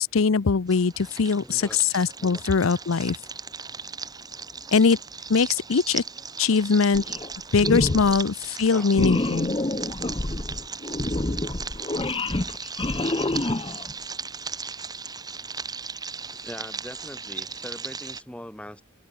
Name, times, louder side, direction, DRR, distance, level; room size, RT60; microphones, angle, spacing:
voice 1, 0.0-3.2 4.7-5.0 5.3-6.0 6.4-7.0 7.5-9.5, left 5 dB, 80° left, 0.6 m, -21 dB
sound 1, 0.7-18.2, right 5 dB, 20° right, 1.4 m, -37 dB
voice 2, 1.4-1.8 2.2-2.7 8.7-8.9 16.4-18.8, left 1 dB, 5° left, 1.8 m, -41 dB
sound 2, 6.9-7.3 7.6-8.2 8.9-13.9, left 2 dB, 25° left, 1.0 m, -27 dB
open air
head